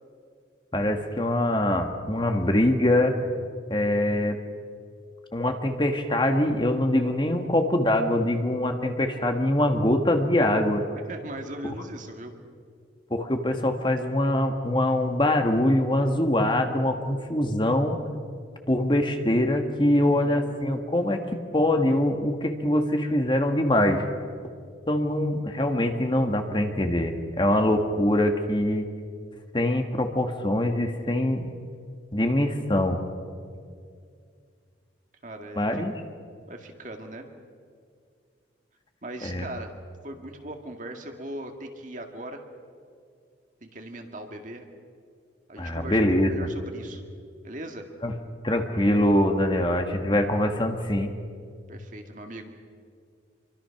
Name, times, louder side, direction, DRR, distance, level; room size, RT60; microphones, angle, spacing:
voice 1, 0.7-3.2 3.7-4.4 5.3-10.8 13.1-18.0 18.7-21.2 21.5-24.0 24.9-28.8 29.5-31.5 32.1-33.0 35.6-35.9 39.2-39.4 45.6-46.3 48.0-48.1 48.4-51.1, left 1 dB, 25° left, 5 dB, 1.5 m, -23 dB
voice 2, 11.1-12.3 19.9-20.4 35.2-35.8 36.5-37.3 39.0-39.7 40.0-42.4 43.6-44.7 45.5-47.0 47.4-47.9 51.7-52.5, right 1 dB, 40° right, 4 dB, 2.0 m, -39 dB
27.5 x 24.0 x 5.9 m, 2.2 s
head